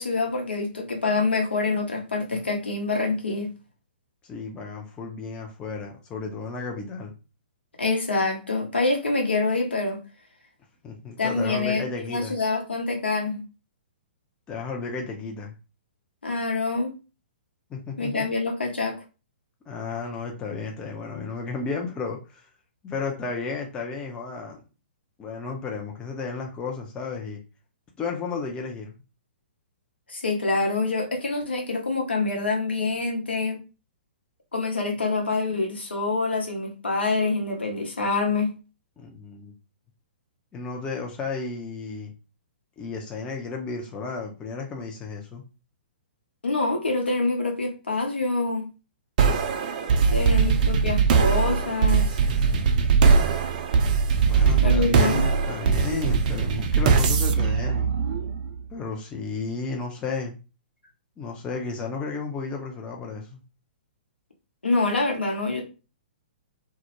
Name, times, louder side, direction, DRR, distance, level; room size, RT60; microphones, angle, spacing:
voice 1, 0.0-3.5 7.8-10.0 11.2-13.4 16.2-17.0 18.0-19.0 30.1-33.6 34.5-38.5 46.4-48.7 50.1-52.2 54.5-55.4 55.9-56.1 64.6-65.6, left 3 dB, 75° left, 0.9 m, -26 dB
voice 2, 4.2-7.1 10.8-12.4 14.5-15.6 17.7-18.3 19.7-22.5 22.8-24.6 25.2-27.4 28.0-29.0 39.0-39.5 40.5-42.1 42.8-45.4 50.1-50.6 54.2-57.9 58.7-60.4 61.2-63.4, left 4 dB, 15° left, 0.5 m, -33 dB
sound 1, 49.2-58.6, right 5 dB, 45° right, 0.4 m, -21 dB
2.2 x 2.0 x 2.9 m
figure-of-eight pair, 120°, 6 cm